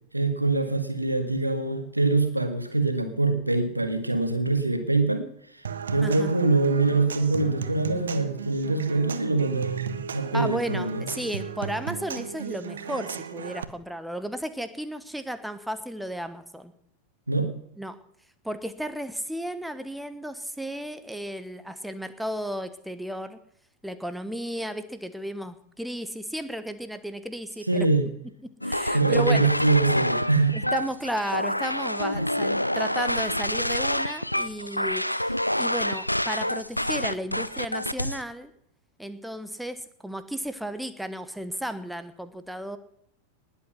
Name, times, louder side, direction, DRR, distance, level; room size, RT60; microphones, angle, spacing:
voice 1, 0.1-5.3 5.9-11.1 17.3-17.5 27.7-28.0 28.9-30.6, right 3 dB, 85° right, 8 dB, 1.8 m, -24 dB
Human voice / Acoustic guitar / Percussion, 5.6-13.6, right 7 dB, 70° right, 1.0 m, -36 dB
voice 2, 6.0-6.3 10.3-16.7 17.8-18.0 18.4-23.4 23.8-27.9 28.4-29.5 30.5-38.5 39.0-42.8, right 1 dB, ahead, 10 dB, 1.2 m, -34 dB
sound 1, 28.6-38.2, left 1 dB, 90° left, 0.6 m, -27 dB
19.5 x 8.3 x 6.0 m, 0.71 s
figure-of-eight pair, 90°, 0 cm